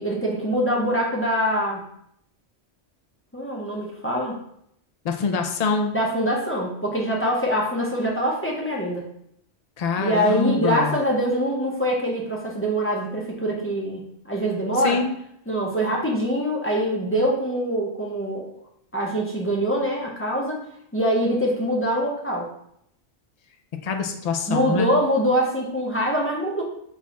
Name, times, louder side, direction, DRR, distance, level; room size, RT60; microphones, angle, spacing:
voice 1, 0.0-1.8 3.3-4.4 5.9-9.0 10.0-15.0 15.5-18.5 18.9-20.6 20.9-22.5 24.5-26.6, equal, 15° left, -3 dB, 0.6 m, -24 dB
voice 2, 5.0-5.9 9.8-10.9 14.8-15.1 23.8-24.9, left 5 dB, 60° left, 5 dB, 0.4 m, -24 dB
4.6 x 2.3 x 4.0 m, 0.73 s
omnidirectional pair, 1.2 m